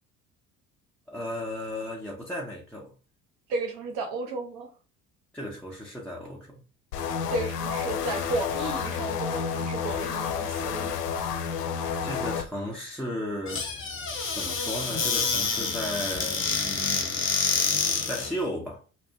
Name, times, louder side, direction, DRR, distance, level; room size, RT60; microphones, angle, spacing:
voice 1, 1.1-2.9 5.3-6.6 12.0-13.7 14.3-17.2 18.1-18.8, left 1 dB, ahead, 0.4 m, -35 dB
voice 2, 3.5-4.7 7.3-11.0, right 3 dB, 50° right, 0.9 m, -33 dB
sound 1, 6.9-12.4, left 7 dB, 75° left, 0.6 m, -30 dB
Squeak / Cupboard open or close, 13.5-18.3, left 5 dB, 25° left, 0.8 m, -27 dB
2.3 x 2.3 x 2.6 m
figure-of-eight pair, 55°, 48 cm